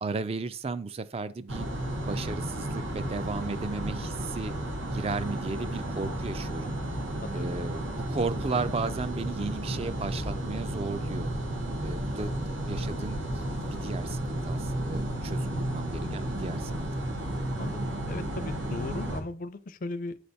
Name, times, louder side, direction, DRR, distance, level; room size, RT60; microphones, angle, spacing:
voice 1, 0.0-1.7 2.1-4.5 4.9-6.8 7.3-11.3 11.8-12.3 12.7-16.9, right 3 dB, 30° right, 0.4 m, -35 dB
sound 1, 1.5-19.2, right 1 dB, 90° right, 1.3 m, -33 dB
voice 2, 17.6-20.2, left 2 dB, 45° left, 0.4 m, -37 dB
8.4 x 3.3 x 4.1 m
head